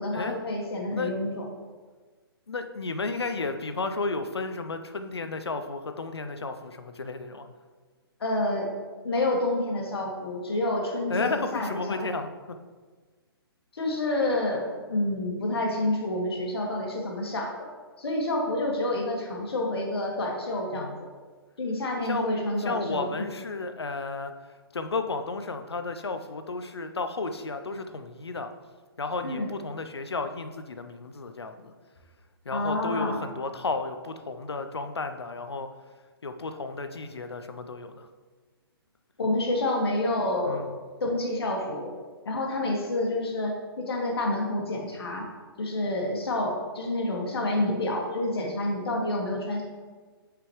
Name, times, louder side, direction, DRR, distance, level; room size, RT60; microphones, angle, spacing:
voice 1, 0.0-1.5 8.2-8.7 9.0-12.0 13.7-17.5 18.0-21.1 21.6-23.3 29.2-29.5 32.5-33.2 39.2-40.7 41.0-41.9 42.3-45.3 45.6-49.6, left 1 dB, 75° left, 0 dB, 1.8 m, -28 dB
voice 2, 2.5-7.5 11.1-12.3 20.7-21.0 22.0-22.3 22.6-24.3 24.7-28.5 29.0-31.7 32.4-35.7 36.2-38.1 40.5-40.8, left 3 dB, 90° left, 8 dB, 0.6 m, -33 dB
7.6 x 5.1 x 3.2 m, 1.4 s
hypercardioid pair, 135°, 13 cm